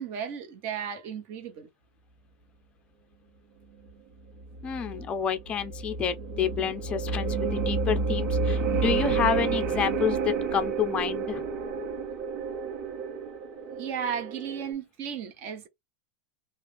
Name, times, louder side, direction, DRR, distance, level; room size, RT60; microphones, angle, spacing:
voice 1, 0.0-1.7 13.7-15.7, right 8 dB, 45° right, 1.0 m, -34 dB
sound 1, 4.4-14.7, right 4 dB, 60° right, 1.3 m, -30 dB
voice 2, 4.6-11.4, left 8 dB, 20° left, 0.5 m, -29 dB
3.2 x 2.5 x 3.4 m
supercardioid pair, 145°, 5 cm